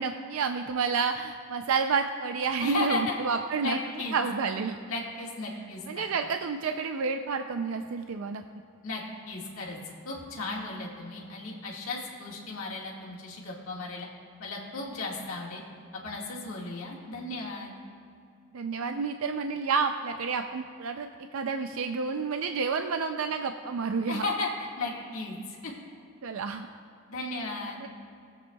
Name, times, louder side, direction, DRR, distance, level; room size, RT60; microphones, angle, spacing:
voice 1, 0.0-3.8 4.1-4.8 5.9-8.4 18.5-24.2 26.2-26.7 27.8-27.9, right 5 dB, 85° right, 6 dB, 0.4 m, -30 dB
voice 2, 2.6-3.2 3.6-4.2 4.9-6.1 8.8-9.8 10.0-14.1 14.4-15.6 16.0-17.7 24.1-24.5 24.8-25.7 27.1-27.8, left 3 dB, 90° left, -3 dB, 1.8 m, -35 dB
22.0 x 7.9 x 2.3 m, 2.5 s
head